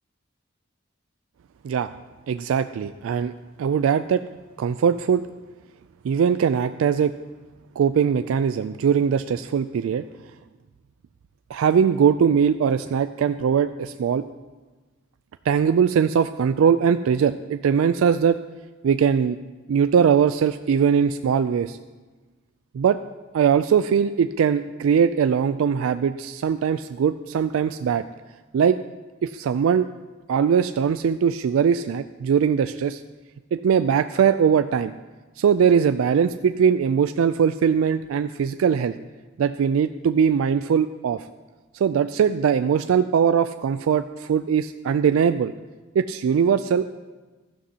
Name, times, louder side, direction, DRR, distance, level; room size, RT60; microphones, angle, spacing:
voice 1, 2.3-3.3 3.6-4.2 4.6-5.2 6.0-7.1 7.8-10.0 11.5-14.2 15.5-18.4 18.8-19.4 19.7-21.8 22.7-23.0 23.3-28.0 28.5-28.8 29.2-29.9 30.3-33.0 33.5-34.9 35.4-38.9 39.4-41.3 41.7-45.5 46.0-47.0, right 7 dB, 90° right, 11 dB, 0.3 m, -21 dB
16.0 x 12.5 x 2.8 m, 1.3 s
head